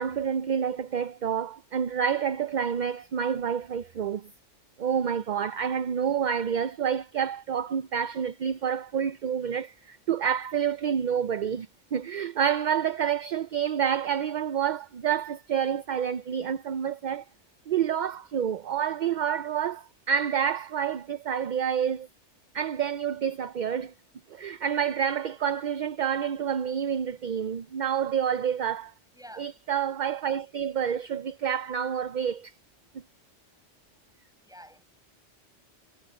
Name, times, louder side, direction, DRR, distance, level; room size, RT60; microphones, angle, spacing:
voice 1, 0.0-4.3 4.8-17.3 17.7-22.1 22.5-23.9 24.3-28.9 29.4-32.5, right 8 dB, 55° right, 0.6 m, -28 dB
voice 2, 29.1-29.5 34.4-34.8, equal, 5° right, 7.0 m, -48 dB
omnidirectional pair, 1.2 m